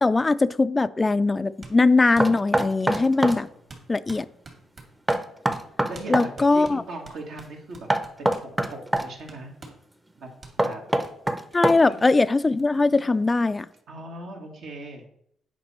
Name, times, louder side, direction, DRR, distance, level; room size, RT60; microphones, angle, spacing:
voice 1, 0.0-3.5 3.9-4.3 6.1-6.8 11.5-13.7, left 3 dB, 20° left, 14 dB, 0.3 m, -21 dB
sound 1, 1.6-1.8 2.2-5.3 5.5-5.7 5.9-6.1 6.4-9.8 10.4-10.6 11.0-11.1 11.5-11.6 11.9-12.0 12.2-13.0, right 3 dB, 45° right, 2.4 m, -45 dB
Knock, 2.2-3.4 5.1-6.3 7.9-9.1 10.6-12.0, right 1 dB, 15° right, 0.7 m, -24 dB
voice 2, 5.9-7.9 8.2-9.5 10.2-10.3 10.6-10.8 11.8-12.1 12.5-13.1 13.9-15.0, right 2 dB, 75° right, 1 dB, 2.0 m, -39 dB
8.5 x 5.2 x 4.3 m, 0.70 s
cardioid pair, 90°, 0 cm